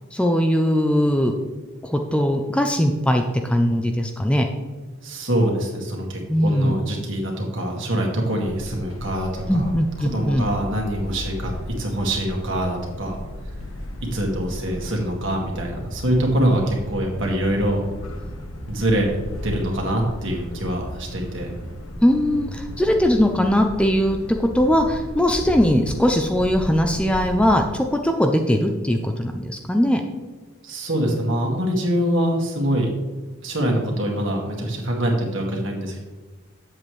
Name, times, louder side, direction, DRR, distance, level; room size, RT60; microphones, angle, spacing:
voice 1, 0.1-1.3 1.8-4.5 6.3-6.7 9.5-10.5 22.0-24.2 24.5-30.0, equal, 5° left, 4 dB, 0.4 m, -20 dB
voice 2, 5.0-9.7 10.0-13.2 14.1-17.8 18.7-19.1 19.4-21.5 30.6-32.9 33.4-36.0, right 1 dB, 65° right, 0 dB, 1.9 m, -24 dB
sound 1, 8.4-27.6, left 1 dB, 85° left, 1.5 m, -35 dB
8.7 x 7.5 x 3.2 m, 1.3 s
head